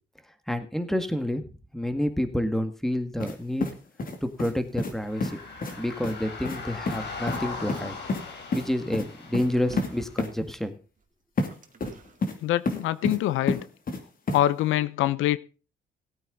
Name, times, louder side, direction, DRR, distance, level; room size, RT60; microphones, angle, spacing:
voice 1, 0.5-1.5 1.7-3.7 4.2-5.3 5.8-8.0 8.5-10.8, left 1 dB, ahead, 1.8 m, -29 dB
sound 1, 3.2-3.4 3.6-4.5 4.8-4.9 5.2-5.3 5.6-5.8 6.0-6.2 6.4-6.6 6.9-7.0 7.3-7.4 7.7-8.2 8.5-8.7 8.9-9.1 9.3-9.5 9.8-9.9 10.2-10.3 11.4-11.5 11.8-12.4 12.7-13.2 13.5-14.0 14.3-14.4, left 3 dB, 45° left, 2.5 m, -29 dB
sound 2, 5.0-10.2, left 4 dB, 60° left, 3.5 m, -39 dB
sound 3, 9.7-10.2 11.0-12.3 13.1-13.2, right 5 dB, 40° right, 2.0 m, -44 dB
voice 2, 12.4-13.6 14.3-15.4, left 13 dB, 90° left, 0.6 m, -24 dB
17.5 x 8.9 x 3.9 m
cardioid pair, 90°, 20 cm